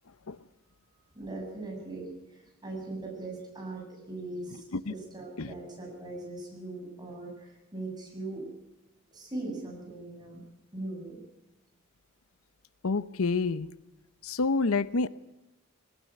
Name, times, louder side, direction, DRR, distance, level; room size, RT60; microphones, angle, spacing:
voice 1, 1.1-8.4 9.1-10.4 10.7-11.2, right 2 dB, 20° right, 0 dB, 7.5 m, -40 dB
voice 2, 12.8-13.7 14.2-15.1, left 3 dB, 85° left, 15 dB, 0.8 m, -28 dB
20.5 x 19.0 x 9.2 m, 0.95 s
head